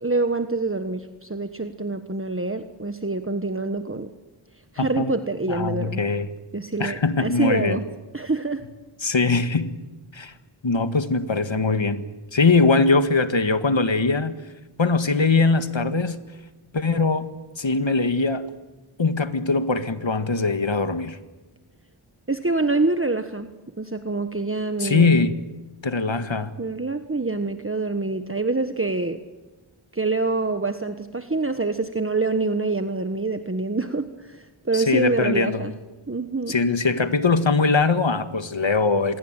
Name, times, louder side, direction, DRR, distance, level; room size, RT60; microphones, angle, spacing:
voice 1, 0.0-4.1 4.7-6.0 6.5-7.8 8.1-8.6 22.3-23.5 23.8-25.2 26.1-26.2 26.6-29.2 29.9-35.7 36.1-36.5, right 3 dB, 25° right, 9 dB, 1.4 m, -26 dB
voice 2, 4.8-5.1 5.5-6.3 6.8-7.8 9.0-9.7 10.1-10.3 10.6-12.0 12.3-14.4 14.8-16.2 16.7-17.3 17.6-18.5 19.0-21.2 24.8-25.4 25.8-26.5 34.7-35.6 36.5-39.2, left 3 dB, 70° left, 11 dB, 1.8 m, -21 dB
27.0 x 21.5 x 9.0 m, 1.1 s
wide cardioid pair, 45°, 47 cm